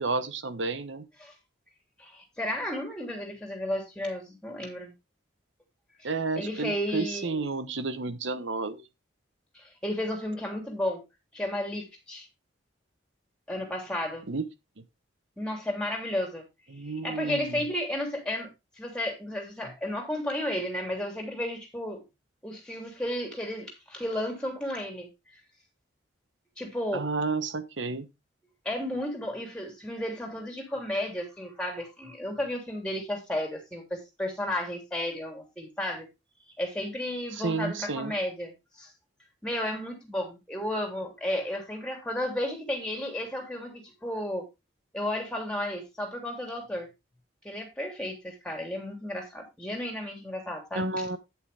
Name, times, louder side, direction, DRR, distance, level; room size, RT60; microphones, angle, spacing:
voice 1, 0.0-1.1 6.0-8.8 14.3-14.5 16.7-17.6 26.9-28.1 37.3-38.1 50.7-51.2, right 3 dB, 75° right, 1.1 m, -31 dB
voice 2, 2.0-4.9 6.0-6.1 6.4-7.4 9.5-11.0 11.3-12.3 13.5-14.3 15.4-16.4 17.0-18.5 18.8-22.0 22.4-25.1 26.6-27.1 28.6-36.1 36.6-38.5 38.8-38.9 39.4-44.4 44.9-46.9 47.4-50.9, left 1 dB, 5° left, 3.0 m, -33 dB
9.1 x 8.3 x 3.4 m
head